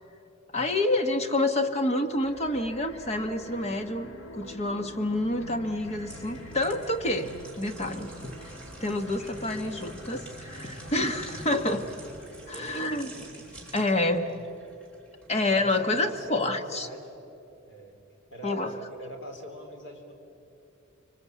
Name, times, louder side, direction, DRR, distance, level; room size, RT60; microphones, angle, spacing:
voice 1, 0.5-4.1 4.3-11.9 12.5-13.1 13.7-14.3 15.3-16.9 18.4-18.7, left 2 dB, 30° left, 7 dB, 1.3 m, -28 dB
sound 1, 2.1-12.8, equal, 85° left, 1.8 m, -47 dB
sound 2, 5.7-15.7 16.1-16.3, right 1 dB, 5° left, 4.1 m, -46 dB
voice 2, 12.5-13.8 14.3-14.4 15.5-17.2 17.6-17.9 18.3-20.1, right 1 dB, 60° left, 3 dB, 4.0 m, -43 dB
26.5 x 23.5 x 8.4 m, 2.9 s
head